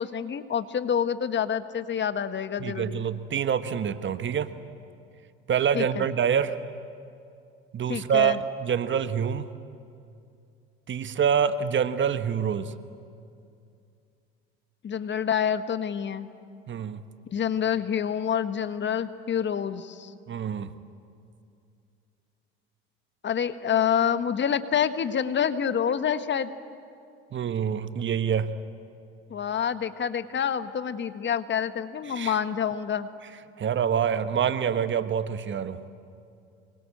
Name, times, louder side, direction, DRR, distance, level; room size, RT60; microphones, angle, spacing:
voice 1, 0.0-3.0 5.7-6.0 7.9-8.4 14.8-16.3 17.3-20.1 23.2-26.5 29.3-33.1, left 8 dB, 35° left, 11 dB, 1.4 m, -27 dB
voice 2, 2.6-4.5 5.5-6.5 7.7-9.5 10.9-12.7 16.7-17.0 20.3-20.7 27.3-28.5 32.1-32.4 33.6-35.8, right 8 dB, 40° right, 11 dB, 1.4 m, -26 dB
25.0 x 23.0 x 8.6 m, 2.5 s
hypercardioid pair, 75°, 30 cm